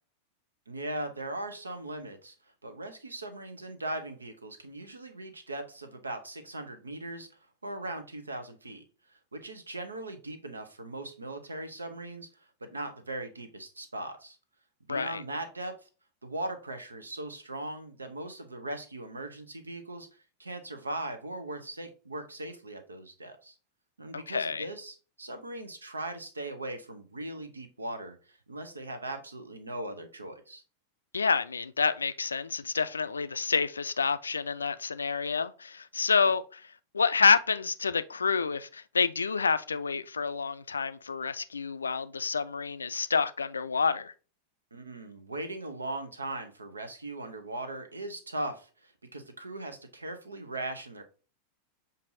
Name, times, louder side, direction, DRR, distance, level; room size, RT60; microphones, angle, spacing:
voice 1, 0.7-2.4 2.6-7.3 7.6-8.8 9.1-14.4 14.9-15.9 16.2-20.1 20.4-23.5 24.0-30.6 44.7-51.0, right 2 dB, 75° right, 0.7 m, -39 dB
voice 2, 14.9-15.2 24.3-24.7 31.1-36.6 36.9-44.1, left 5 dB, 75° left, 0.3 m, -28 dB
6.7 x 2.6 x 2.6 m
figure-of-eight pair, 90°, 0 cm